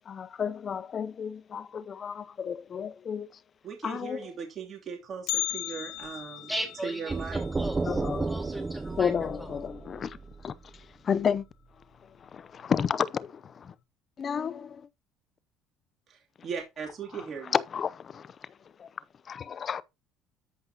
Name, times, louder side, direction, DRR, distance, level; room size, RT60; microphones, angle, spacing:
voice 1, 0.1-3.4 3.8-4.2 7.8-8.4 9.0-10.2 10.4-11.5 12.2-13.7 14.2-14.9 17.1-18.5 18.8-18.9 19.3-19.8, left 7 dB, 40° left, 0.6 m, -32 dB
voice 2, 3.6-6.5 6.8-7.5 16.1-17.6, right 6 dB, 45° right, 2.8 m, -38 dB
Bell, 5.3-9.4 9.6-9.7 10.2-10.3 11.1-11.2 12.0-12.3 12.6-12.7, left 18 dB, 80° left, 0.8 m, -37 dB
voice 3, 6.3-9.1, equal, 5° right, 3.7 m, -37 dB
sound 1, 7.1-10.8, right 3 dB, 20° right, 0.6 m, -33 dB
13.5 x 5.4 x 2.8 m
supercardioid pair, 100°, 0 cm